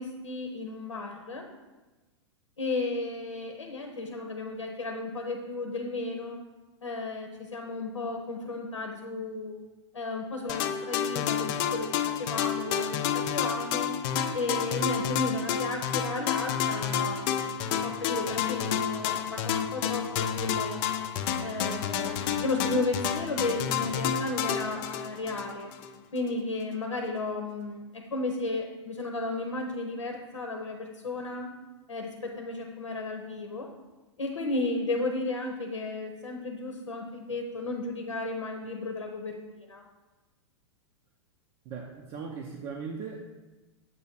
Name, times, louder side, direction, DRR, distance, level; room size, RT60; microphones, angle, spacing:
voice 1, 0.0-1.5 2.6-6.4 6.8-9.5 9.9-13.9 14.3-17.5 17.8-20.8 21.4-25.7 26.1-31.5 31.9-33.7 34.2-39.8, left 3 dB, 90° left, 3 dB, 0.8 m, -34 dB
sound 1, 10.5-25.9, left 8 dB, 50° left, 0.5 m, -30 dB
voice 2, 41.7-43.3, right 5 dB, 40° right, 0 dB, 0.7 m, -38 dB
7.6 x 2.7 x 5.9 m, 1.2 s
hypercardioid pair, 105°, 15 cm